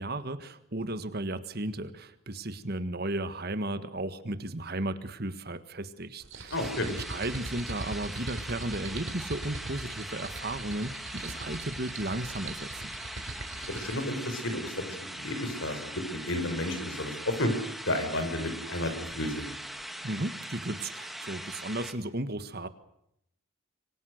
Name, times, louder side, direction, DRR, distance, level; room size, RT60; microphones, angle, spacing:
voice 1, 0.0-6.7 7.1-12.7 20.0-22.7, right 1 dB, 45° right, 12 dB, 1.6 m, -35 dB
sound 1, 6.2-14.1, right 2 dB, 70° right, 4.2 m, -41 dB
voice 2, 6.5-6.9 13.7-14.7 15.0-17.5 17.9-19.5, left 1 dB, 65° left, 8 dB, 6.0 m, -32 dB
sound 2, 6.5-21.9, equal, ahead, 2.0 m, -41 dB
26.5 x 24.0 x 6.6 m, 0.76 s
head